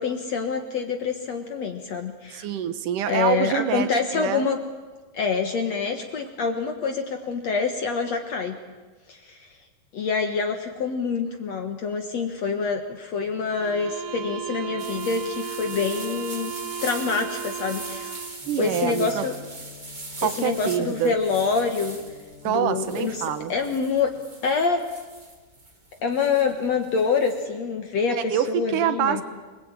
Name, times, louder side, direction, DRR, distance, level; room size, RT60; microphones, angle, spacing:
voice 1, 0.0-2.5 3.1-4.6 5.1-8.6 9.1-9.5 9.9-16.5 16.8-18.1 18.6-19.4 20.2-22.0 22.5-24.1 24.4-24.8 26.0-29.2, left 5 dB, 55° left, 5 dB, 2.0 m, -26 dB
voice 2, 2.3-4.5 18.5-19.2 20.2-21.2 22.4-23.5 28.1-29.2, right 10 dB, 65° right, 12 dB, 2.3 m, -26 dB
sound 1, 13.5-18.4, right 8 dB, 90° right, 3.9 m, -35 dB
sound 2, 14.8-27.4, right 2 dB, 15° right, 1.6 m, -41 dB
sound 3, 18.4-24.0, left 7 dB, 80° left, 5.1 m, -48 dB
29.0 x 21.0 x 9.0 m, 1.3 s
omnidirectional pair, 4.7 m